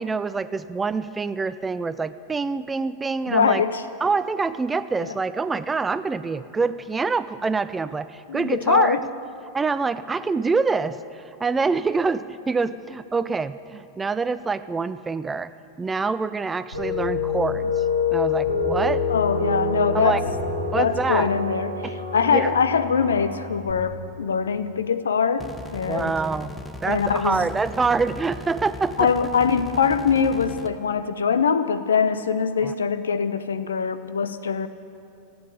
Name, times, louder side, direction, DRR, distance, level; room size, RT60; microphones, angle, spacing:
voice 1, 0.0-3.6 4.0-9.0 9.5-15.5 15.8-17.8 18.1-19.0 19.9-20.2 20.7-21.3 21.8-22.0 22.3-22.5 25.9-26.5 26.8-29.1 32.6-32.7, right 4 dB, 15° right, 14 dB, 0.4 m, -25 dB
voice 2, 3.3-3.8 5.0-5.1 8.3-9.0 19.1-20.2 20.8-26.2 26.9-27.4 29.0-34.7, left 6 dB, 70° left, 12 dB, 0.7 m, -23 dB
sound 1, 16.7-23.7, left 4 dB, 85° left, 3.2 m, -26 dB
sound 2, 25.4-30.7, left 2 dB, 10° left, 0.9 m, -38 dB
15.0 x 8.8 x 9.9 m, 2.6 s
figure-of-eight pair, 90°, 0 cm